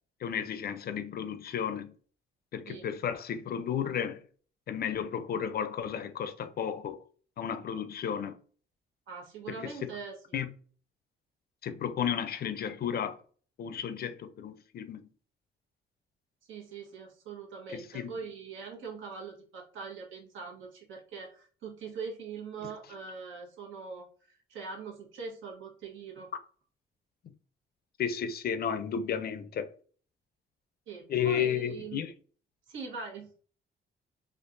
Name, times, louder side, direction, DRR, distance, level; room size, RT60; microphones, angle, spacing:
voice 1, 0.2-1.9 2.5-4.2 4.7-7.0 7.4-8.3 9.5-9.9 10.3-10.5 11.6-13.2 13.6-15.0 17.7-18.1 28.0-29.7 31.1-32.1, left 8 dB, 50° left, 0.5 m, -33 dB
voice 2, 9.1-10.4 16.5-26.3 30.9-32.0 32.7-33.3, right 5 dB, 80° right, 1.2 m, -42 dB
4.4 x 2.4 x 2.6 m
cardioid pair, 90°, 20 cm